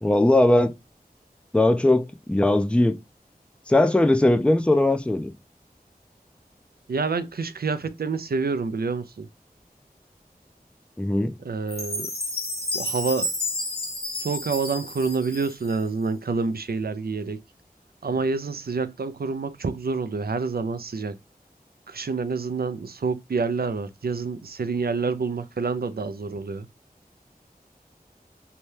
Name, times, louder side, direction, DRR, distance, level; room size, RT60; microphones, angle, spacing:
voice 1, 0.0-0.7 1.5-2.0 2.3-2.9 3.7-5.3 11.0-11.3, left 1 dB, 5° left, 0.4 m, -19 dB
voice 2, 6.9-9.3 11.4-12.1 12.7-13.3 14.2-17.4 18.0-21.2 21.9-26.7, right 4 dB, 75° right, 0.4 m, -27 dB
Chime, 11.7-15.9, left 1 dB, 80° left, 1.0 m, -31 dB
2.7 x 2.2 x 3.2 m
wide cardioid pair, 40°, 16 cm